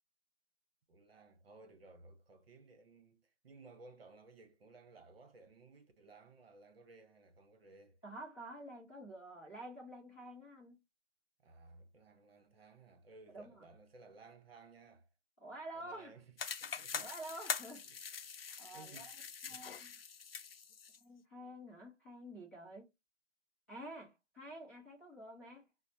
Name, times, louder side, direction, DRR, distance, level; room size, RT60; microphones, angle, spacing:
voice 1, 0.9-8.0 11.4-15.1 15.7-17.1 17.8-18.0 18.5-19.1 19.5-19.6, right 3 dB, 55° right, 0.9 m, -59 dB
voice 2, 8.0-10.8 13.3-13.7 15.4-16.1 17.0-17.9 18.6-19.1 19.4-19.9 21.0-22.9 23.7-25.6, right 1 dB, 10° left, 0.6 m, -49 dB
sound 1, 16.4-21.0, left 6 dB, 55° left, 0.4 m, -43 dB
4.6 x 2.1 x 2.7 m
hypercardioid pair, 160°, 37 cm